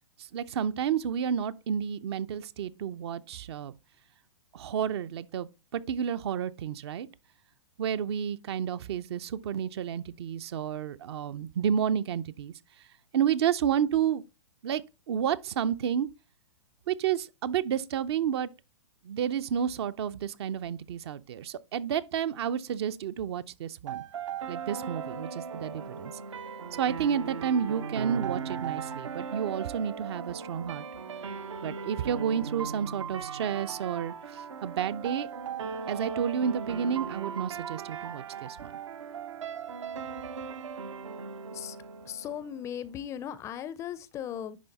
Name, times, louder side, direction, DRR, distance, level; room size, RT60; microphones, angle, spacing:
voice 1, 0.2-3.7 4.5-7.1 7.8-12.5 13.1-14.2 14.6-14.8 15.1-16.1 16.9-18.5 19.0-24.0 24.5-26.1 26.8-30.8 31.6-35.3 35.9-38.7, right 8 dB, 60° right, 0.6 m, -30 dB
sound 1, 23.9-42.8, right 6 dB, 85° right, 1.0 m, -38 dB
voice 2, 42.0-44.6, left 9 dB, 20° left, 0.4 m, -37 dB
10.5 x 3.5 x 4.0 m
hypercardioid pair, 135°, 15 cm